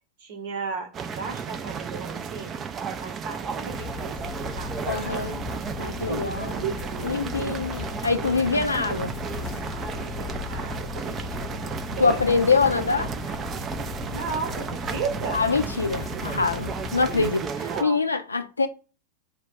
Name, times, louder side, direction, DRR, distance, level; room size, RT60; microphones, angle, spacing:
voice 1, 0.2-2.6 3.0-5.3 6.0-6.3 6.6-7.6 8.1-8.5 9.7-12.2 14.1-15.5 17.5-18.0, right 5 dB, 50° right, 0.9 m, -35 dB
sound 1, 0.9-17.8, right 6 dB, 25° right, 0.3 m, -33 dB
sound 2, 3.6-17.3, left 6 dB, 35° left, 0.6 m, -37 dB
voice 2, 4.9-5.4 5.8-6.6 7.0-9.2 12.0-13.1 15.3-18.7, left 4 dB, 75° left, 0.3 m, -24 dB
2.2 x 2.0 x 3.5 m
figure-of-eight pair, 90°, 0 cm